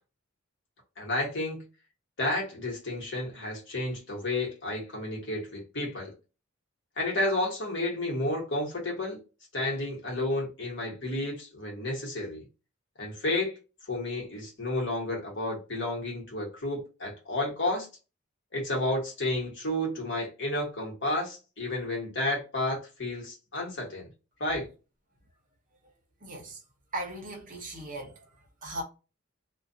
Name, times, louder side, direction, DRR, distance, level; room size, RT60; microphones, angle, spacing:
voice 1, 1.0-1.6 2.2-6.1 7.0-9.2 9.5-12.4 13.0-13.5 13.9-17.9 18.5-24.1 24.4-24.7, left 1 dB, 60° left, 1.2 m, -31 dB
voice 2, 26.2-26.6 26.9-28.1 28.6-28.8, right 1 dB, 40° right, 0.8 m, -37 dB
2.4 x 2.3 x 2.6 m
head